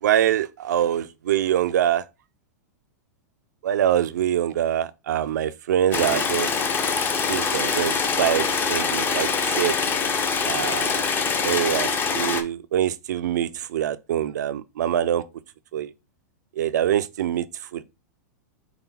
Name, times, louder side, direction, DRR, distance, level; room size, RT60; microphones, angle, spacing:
voice 1, 0.0-2.0 3.6-6.6 7.3-9.8 10.4-11.1 11.4-15.2 15.7-15.9 16.6-17.5 17.7-17.8, right 10 dB, 80° right, 0.5 m, -24 dB
sound 1, 5.9-12.4, left 5 dB, 20° left, 0.6 m, -24 dB
5.8 x 2.2 x 4.1 m
hypercardioid pair, 130°, 9 cm